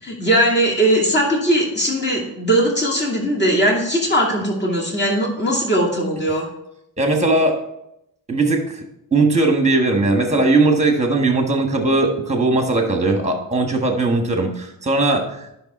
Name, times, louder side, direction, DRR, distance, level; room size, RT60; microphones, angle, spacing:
voice 1, 0.0-6.5, right 1 dB, 25° left, -1 dB, 2.2 m, -19 dB
voice 2, 7.0-7.6 8.3-8.8 9.1-15.6, right 2 dB, 15° right, 3 dB, 1.5 m, -18 dB
10.5 x 6.1 x 4.3 m, 0.81 s
cardioid pair, 130°, 44 cm